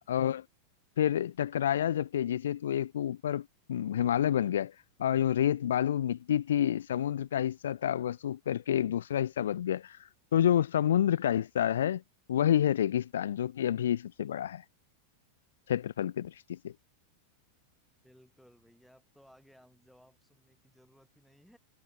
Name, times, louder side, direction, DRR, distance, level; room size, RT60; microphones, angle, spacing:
voice 1, 0.1-0.4 1.0-4.7 5.0-10.0 10.3-12.0 12.3-14.6 15.7-16.7, left 10 dB, 60° left, 0.4 m, -29 dB
voice 2, 18.0-21.6, equal, ahead, 5.5 m, -61 dB
figure-of-eight pair, 90°, 0 cm